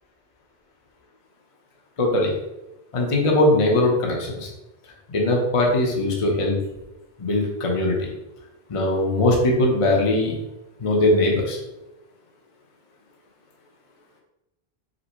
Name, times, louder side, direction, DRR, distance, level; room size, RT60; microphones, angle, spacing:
voice 1, 2.0-2.4 2.9-4.5 5.1-6.6 7.2-8.1 8.7-10.4 10.8-11.6, left 1 dB, 35° left, -1 dB, 0.7 m, -20 dB
5.1 x 2.1 x 4.4 m, 0.96 s
omnidirectional pair, 1.1 m